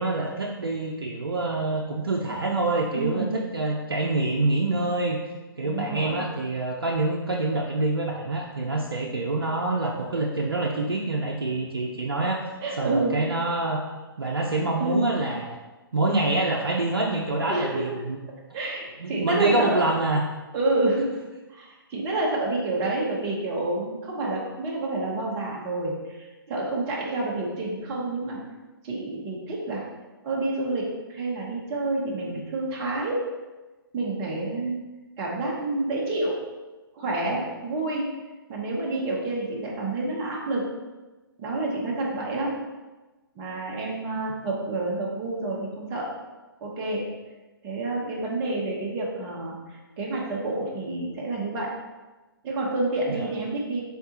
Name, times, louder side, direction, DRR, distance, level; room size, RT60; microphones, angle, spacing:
voice 1, 0.0-5.2 5.6-12.4 12.8-13.8 14.2-15.6 15.9-18.2 19.0-20.2 53.1-53.3, right 2 dB, 80° right, -1 dB, 0.5 m, -26 dB
voice 2, 2.9-3.3 5.6-6.3 12.6-13.2 14.8-15.1 17.4-18.0 18.3-19.8 20.5-21.2 21.5-28.4 28.8-29.8 30.2-33.2 33.9-34.8 35.2-36.4 36.9-38.1 38.5-40.6 41.4-42.5 43.4-46.1 46.6-47.0 47.6-51.7 52.4-53.8, right 2 dB, 25° right, -3 dB, 0.8 m, -28 dB
4.5 x 3.6 x 2.8 m, 1.2 s
figure-of-eight pair, 130°, 12 cm